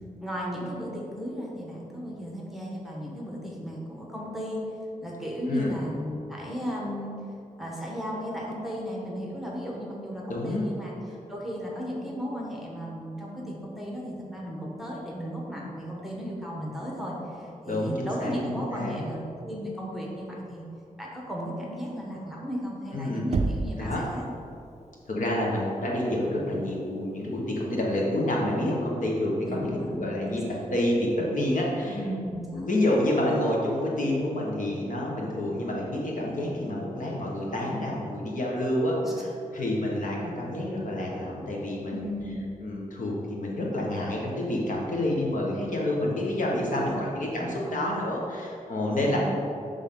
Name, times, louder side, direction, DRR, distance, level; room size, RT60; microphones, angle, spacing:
voice 1, 0.2-4.6 5.0-7.1 7.6-20.6 21.0-24.2 29.4-30.7 31.9-32.8 39.0-39.1 41.9-42.4 46.7-47.1 47.4-48.0 48.9-49.2, equal, ahead, -3 dB, 1.1 m, -35 dB
voice 2, 10.3-10.6 17.7-19.0 22.9-23.2 23.8-24.0 25.1-30.4 30.7-32.0 32.5-42.1 42.6-49.2, left 1 dB, 70° left, -3 dB, 1.3 m, -28 dB
Knock, 23.3-24.0, right 4 dB, 50° right, 0.4 m, -27 dB
10.5 x 3.6 x 3.8 m, 2.6 s
wide cardioid pair, 140°, 14 cm